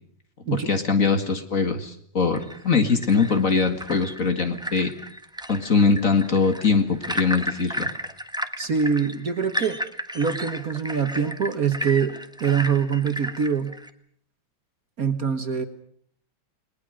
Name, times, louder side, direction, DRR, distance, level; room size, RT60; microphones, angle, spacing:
voice 1, 0.5-4.9 5.5-7.9, left 4 dB, 40° left, 7 dB, 2.3 m, -22 dB
sound 1, 2.3-13.9, equal, 5° right, 0.9 m, -34 dB
voice 2, 8.6-9.8 10.1-13.8 15.0-15.6, right 6 dB, 50° right, 8 dB, 1.7 m, -24 dB
29.5 x 20.5 x 6.4 m, 0.63 s
omnidirectional pair, 2.2 m